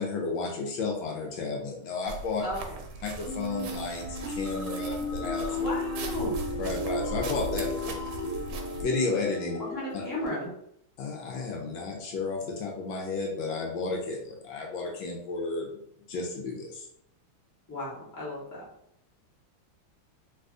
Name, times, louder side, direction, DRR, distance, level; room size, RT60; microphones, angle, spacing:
voice 1, 0.0-2.4 3.0-5.6 6.6-8.0 8.8-9.6 9.9-10.0 11.0-15.8 16.1-16.9, left 4 dB, 75° left, 0 dB, 1.3 m, -32 dB
sound 1, 2.1-8.8, right 3 dB, 75° right, 1.2 m, -39 dB
voice 2, 2.4-2.8 5.6-6.3 9.7-10.5 17.7-18.6, left 1 dB, 20° left, -7 dB, 0.6 m, -35 dB
sound 2, 3.3-10.3, left 2 dB, 20° right, 0.6 m, -34 dB
3.5 x 2.7 x 2.4 m, 0.74 s
omnidirectional pair, 2.3 m